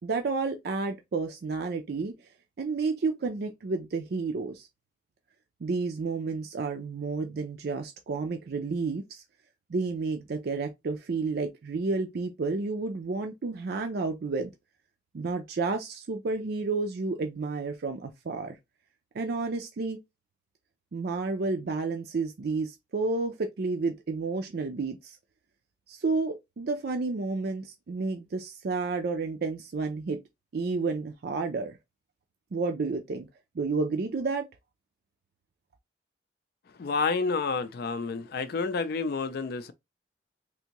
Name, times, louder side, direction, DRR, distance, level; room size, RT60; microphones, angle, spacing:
voice 1, 0.0-2.1 2.6-4.7 5.6-9.2 9.7-14.5 15.1-18.6 19.1-20.0 20.9-25.2 25.9-30.2 30.5-31.8 32.5-33.3 33.5-34.5, right 3 dB, 60° right, 0.4 m, -31 dB
voice 2, 36.8-39.7, left 4 dB, 60° left, 0.4 m, -29 dB
3.4 x 2.6 x 2.9 m
head